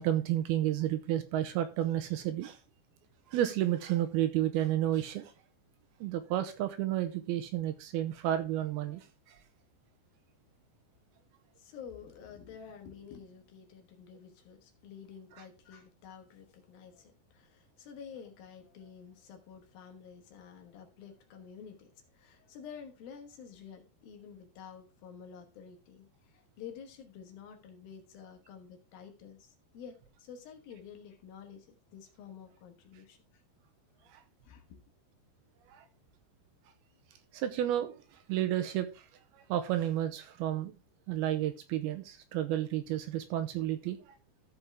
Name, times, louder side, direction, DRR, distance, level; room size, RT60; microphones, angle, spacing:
voice 1, 0.0-2.6 3.3-5.3 6.0-9.4 34.1-34.2 35.7-35.9 37.3-37.9 38.3-39.1 39.3-40.7 41.1-44.0, right 12 dB, 80° right, 2.4 m, -31 dB
voice 2, 11.6-33.4 34.4-34.8, left 7 dB, 65° left, 2.9 m, -50 dB
14.0 x 5.3 x 3.5 m
omnidirectional pair, 4.8 m